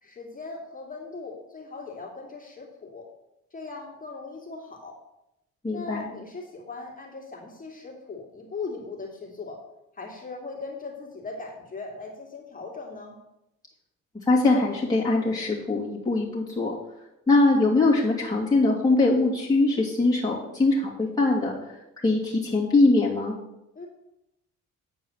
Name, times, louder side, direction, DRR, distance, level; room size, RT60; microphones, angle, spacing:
voice 1, 0.0-3.1 3.5-5.0 5.7-9.6 9.9-13.2 23.7-23.9, left 3 dB, 25° left, -1 dB, 2.6 m, -39 dB
voice 2, 5.6-6.1 14.3-16.8 17.3-21.8 22.0-23.3, left 2 dB, 10° left, -6 dB, 2.5 m, -22 dB
8.8 x 4.6 x 7.2 m, 0.88 s
cardioid pair, 90°, 30 cm